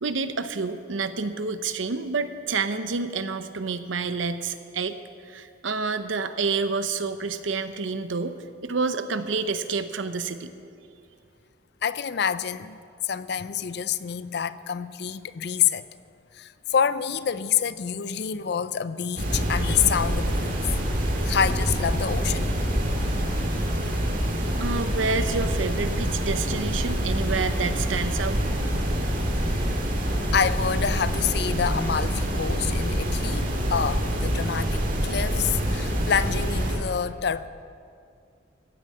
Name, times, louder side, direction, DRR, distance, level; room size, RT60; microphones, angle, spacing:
voice 1, 0.0-5.0 5.3-8.4 8.6-10.5 24.6-28.6, right 4 dB, 80° right, 10 dB, 0.8 m, -28 dB
voice 2, 11.8-15.9 16.3-20.6 21.2-22.5 29.7-29.8 30.3-37.5, left 7 dB, 55° left, 15 dB, 0.4 m, -27 dB
sound 1, 19.2-36.8, equal, 45° right, 2.0 m, -26 dB
15.5 x 8.6 x 7.6 m, 2.3 s
head